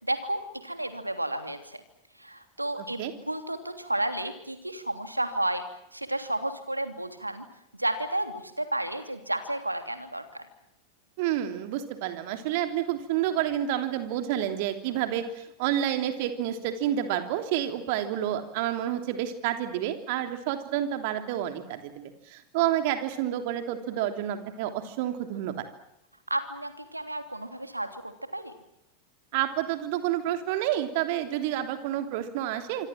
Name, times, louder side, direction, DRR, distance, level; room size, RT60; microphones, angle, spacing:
voice 1, 0.0-1.8 2.2-5.6 5.9-7.4 7.7-10.5 26.3-28.5, right 1 dB, 85° right, 8 dB, 3.1 m, -32 dB
voice 2, 2.8-3.1 11.2-25.6 29.3-32.9, right 11 dB, 50° right, 7 dB, 3.2 m, -29 dB
26.5 x 25.5 x 7.7 m, 0.82 s
figure-of-eight pair, 90°, 0 cm